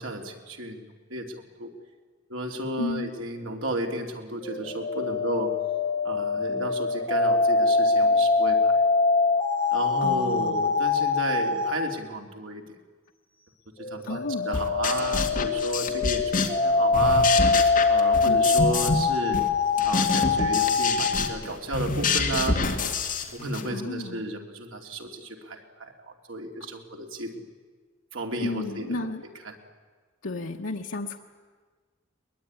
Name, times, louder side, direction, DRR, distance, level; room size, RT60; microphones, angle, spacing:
voice 1, 0.0-1.7 2.3-5.5 6.0-8.8 9.7-12.6 13.9-17.3 17.9-19.4 19.8-22.6 23.3-27.5 28.1-29.0 29.4-29.5, right 1 dB, 85° right, 2 dB, 2.9 m, -33 dB
voice 2, 2.8-3.1 10.0-10.6 14.1-14.5 18.2-18.4 23.7-24.2 28.4-29.2 30.2-31.2, left 2 dB, 90° left, 1 dB, 1.2 m, -32 dB
sound 1, 4.4-11.8 13.8-21.1, left 4 dB, 30° left, 3.2 m, -24 dB
sound 2, 14.5-16.7 16.9-19.1 19.3-23.7, left 3 dB, 45° left, 2.2 m, -27 dB
21.5 x 21.5 x 9.8 m, 1.5 s
head